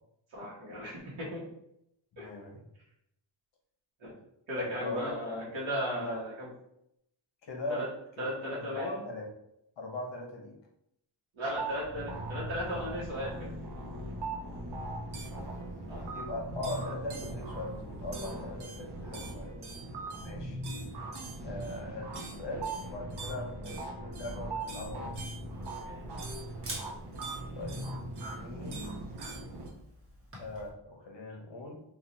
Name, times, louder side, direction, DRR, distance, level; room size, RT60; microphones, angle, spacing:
voice 1, 0.3-1.5 2.2-2.3 4.0-4.1 4.5-6.5 7.7-7.9 8.2-9.0 11.4-13.5 15.9-16.0 18.3-18.4 19.5-19.7 25.7-26.1, equal, 80° right, -6 dB, 1.1 m, -36 dB
voice 2, 2.1-2.6 4.6-5.1 6.0-6.2 7.4-7.9 8.2-9.3 9.8-10.5 16.1-19.5 20.2-20.6 21.4-25.1 27.5-27.9 28.3-28.9 30.4-31.8, left 2 dB, 65° left, 1 dB, 0.9 m, -40 dB
sound 1, 11.5-29.7, right 2 dB, 55° right, 0.7 m, -40 dB
Camera, 24.9-30.7, right 1 dB, 25° right, 1.0 m, -49 dB
3.0 x 2.3 x 4.0 m, 0.78 s
wide cardioid pair, 145°, 47 cm